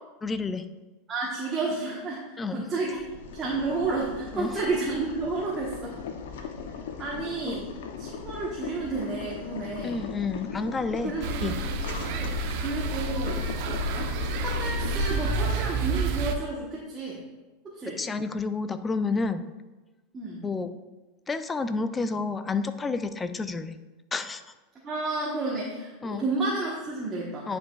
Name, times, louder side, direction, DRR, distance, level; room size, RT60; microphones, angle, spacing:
voice 1, 0.2-0.6 2.4-2.7 4.3-4.6 7.4-7.6 9.8-11.1 11.4-11.6 18.0-19.4 20.4-20.7 21.3-23.8 24.1-24.4 26.0-26.3 27.5-27.6, left 4 dB, 15° left, 11 dB, 0.4 m, -30 dB
voice 2, 1.1-2.2 2.5-3.0 3.3-6.0 7.0-7.7 8.0-10.0 10.9-11.7 12.2-13.5 14.2-17.2 17.6-18.0 20.1-20.4 24.8-27.5, right 3 dB, 25° right, -5 dB, 1.2 m, -31 dB
Boiling, 2.8-15.6, left 5 dB, 80° left, 0.7 m, -39 dB
sound 1, 11.2-16.4, right 2 dB, 60° right, 0.7 m, -29 dB
9.8 x 5.2 x 2.4 m, 1.2 s
supercardioid pair, 120°, 0 cm